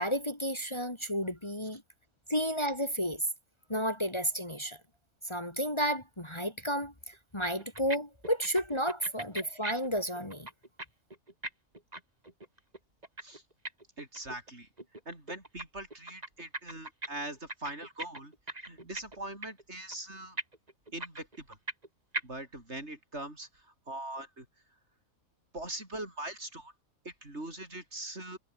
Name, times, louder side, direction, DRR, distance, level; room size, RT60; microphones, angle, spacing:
voice 1, 0.0-1.8 2.3-3.3 3.7-4.8 5.2-10.5, equal, 20° left, 3.0 m, -32 dB
sound 1, 7.1-7.2 7.4-8.0 8.2-10.9 11.1-14.5 14.8-15.6 15.9-17.1 17.4-19.2 19.4-19.6 19.9-20.0 20.4-21.9 22.1-22.2, right 2 dB, 25° right, 3.5 m, -39 dB
voice 2, 14.0-14.7 15.0-18.3 18.6-20.4 20.9-21.6 22.2-24.5 25.5-26.7 27.0-28.4, right 1 dB, 50° right, 6.5 m, -42 dB
omnidirectional pair, 1.5 m